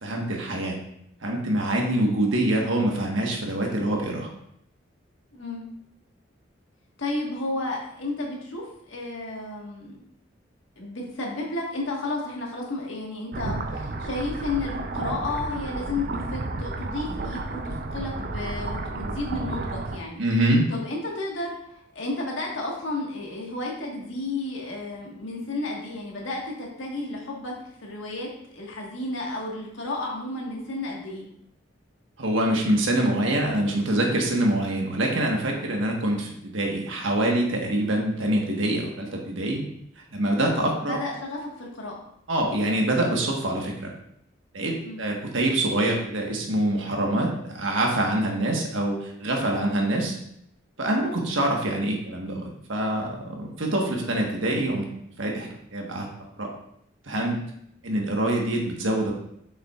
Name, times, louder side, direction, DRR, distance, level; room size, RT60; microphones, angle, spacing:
voice 1, 0.0-0.8 1.2-4.3 20.2-20.7 32.2-39.6 40.1-40.9 42.3-43.9 44.5-50.1 50.8-54.9 55.2-56.1 56.4-56.5 57.1-57.4 57.8-59.1, right 1 dB, 85° right, 0 dB, 1.4 m, -25 dB
voice 2, 5.3-5.6 7.0-10.0 10.8-20.2 20.7-27.5 27.8-28.3 28.5-31.3 40.9-41.9 44.8-45.1, left 2 dB, 80° left, -1 dB, 1.6 m, -32 dB
sound 1, 13.3-20.0, right 2 dB, 50° right, 0.5 m, -32 dB
7.3 x 5.8 x 2.4 m, 0.73 s
head